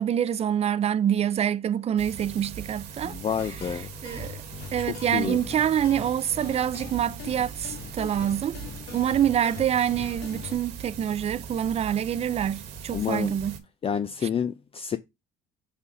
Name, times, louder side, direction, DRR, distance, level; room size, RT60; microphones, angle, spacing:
voice 1, 0.0-3.1 4.0-4.4 4.7-8.6 8.9-13.6, right 9 dB, 40° right, 0.4 m, -26 dB
sound 1, 2.0-13.6, right 6 dB, 90° right, 1.3 m, -40 dB
voice 2, 3.0-3.9 4.8-4.9 5.1-5.4 12.9-13.4 13.8-15.0, left 8 dB, 35° left, 0.5 m, -29 dB
sound 2, 3.4-10.5, left 6 dB, 85° left, 1.3 m, -42 dB
5.3 x 4.1 x 4.9 m
cardioid pair, 110°, 17 cm